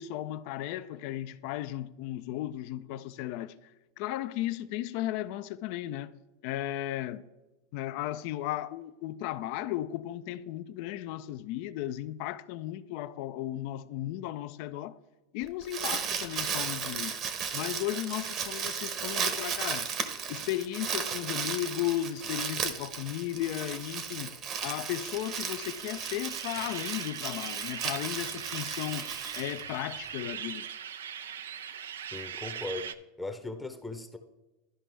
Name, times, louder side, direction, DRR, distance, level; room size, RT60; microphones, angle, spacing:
voice 1, 0.0-3.5 4.0-6.1 6.4-7.2 7.7-15.0 15.3-17.2 17.5-19.9 20.3-24.3 24.6-29.1 29.3-30.7, left 13 dB, 60° left, 0.4 m, -35 dB
Crumpling crinkling, 15.4-30.0, right 7 dB, 40° right, 1.0 m, -35 dB
sound 1, 24.8-32.9, right 8 dB, 85° right, 0.4 m, -41 dB
voice 2, 32.1-32.9 33.2-34.2, left 2 dB, 10° left, 0.7 m, -38 dB
12.5 x 5.1 x 3.3 m
hypercardioid pair, 110°, 0 cm